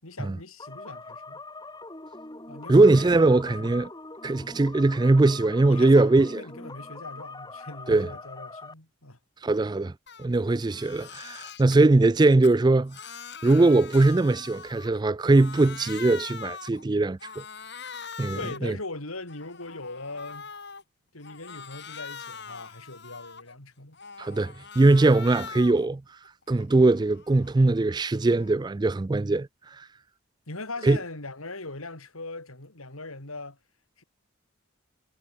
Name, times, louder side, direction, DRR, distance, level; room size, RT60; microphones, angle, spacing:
voice 1, 0.0-1.4 2.5-3.8 5.6-9.2 18.3-20.5 21.1-24.0 30.5-33.6 34.0-34.1, left 2 dB, 85° left, 4.9 m, -40 dB
sound 1, 0.6-8.7, left 3 dB, 20° left, 3.1 m, -43 dB
voice 2, 2.7-3.9 4.2-6.4 7.9-8.1 9.4-9.9 10.2-13.0 13.4-17.2 18.2-18.4 18.6-18.7 24.2-26.0 26.5-29.5 30.8-31.0, right 2 dB, 20° right, 0.3 m, -21 dB
Crying sobbing, 10.1-10.3 10.6-11.8 12.2-15.0 15.3-16.8 17.2-18.7 19.1-20.8 21.2-23.5 23.9-25.9 26.2-28.6, left 6 dB, 50° left, 4.0 m, -43 dB
head